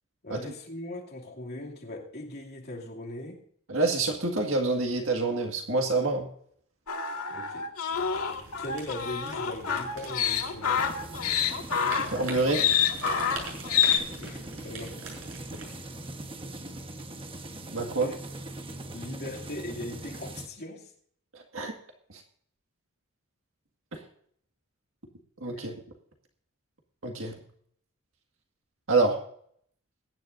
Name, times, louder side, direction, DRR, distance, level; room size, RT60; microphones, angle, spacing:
voice 1, 0.2-3.4 7.3-7.7 8.6-10.9 14.2-15.0 18.0-18.2 18.9-20.9, left 1 dB, 50° left, 2.6 m, -39 dB
voice 2, 3.7-6.3 11.9-12.7 13.7-13.8 17.7-18.1 21.3-21.7 22.1-22.2 23.9-24.0 25.4-25.8 27.0-27.4 28.9-29.2, right 3 dB, 70° right, 1.9 m, -27 dB
sound 1, 6.9-14.0, left 7 dB, 85° left, 2.0 m, -27 dB
sound 2, 7.9-15.7, right 2 dB, 85° right, 6.8 m, -44 dB
sound 3, 10.7-20.5, right 1 dB, 25° right, 1.1 m, -41 dB
21.5 x 10.5 x 2.6 m
head